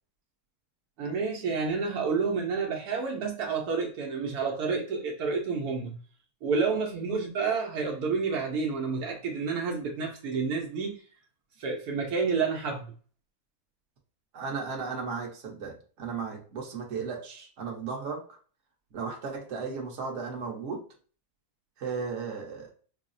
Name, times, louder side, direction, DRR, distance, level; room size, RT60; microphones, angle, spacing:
voice 1, 1.0-6.0 6.4-11.0 11.6-12.9, right 5 dB, 75° right, 1 dB, 1.2 m, -29 dB
voice 2, 14.3-18.4 18.9-20.8 21.8-22.7, right 5 dB, 55° right, 0 dB, 1.1 m, -35 dB
5.5 x 2.0 x 2.5 m, 0.40 s
omnidirectional pair, 1.7 m